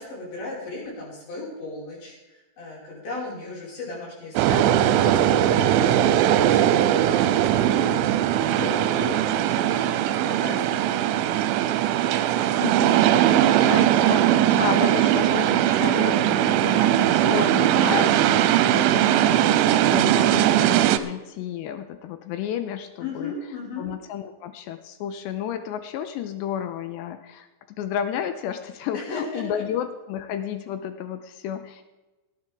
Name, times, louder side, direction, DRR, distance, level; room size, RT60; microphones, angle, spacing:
voice 1, 0.0-11.2 17.8-18.1 23.0-23.9 28.9-29.6, left 2 dB, 50° left, -5 dB, 7.2 m, -36 dB
sound 1, 4.4-21.0, right 11 dB, 85° right, 3.1 m, -20 dB
voice 2, 12.6-23.3 23.8-27.5 27.8-31.8, left 9 dB, 85° left, 9 dB, 2.6 m, -32 dB
18.5 x 10.5 x 3.6 m, 1.1 s
omnidirectional pair, 5.6 m